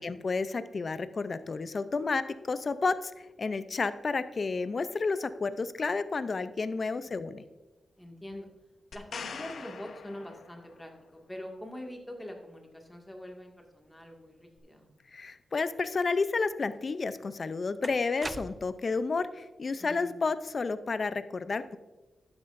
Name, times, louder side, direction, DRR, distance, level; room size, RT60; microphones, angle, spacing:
voice 1, 0.0-3.1 3.4-7.4 15.1-21.8, left 4 dB, 50° left, 12 dB, 0.5 m, -31 dB
voice 2, 8.0-8.5 8.9-14.9 19.8-20.2, left 1 dB, 10° left, 1 dB, 2.0 m, -44 dB
sound 1, 8.9-10.9 14.6-14.7, left 5 dB, 80° left, 0.9 m, -43 dB
sound 2, 16.9-17.0 17.8-18.9, right 2 dB, 25° right, 0.3 m, -41 dB
12.0 x 9.6 x 2.6 m, 1.1 s
cardioid pair, 75°, 0 cm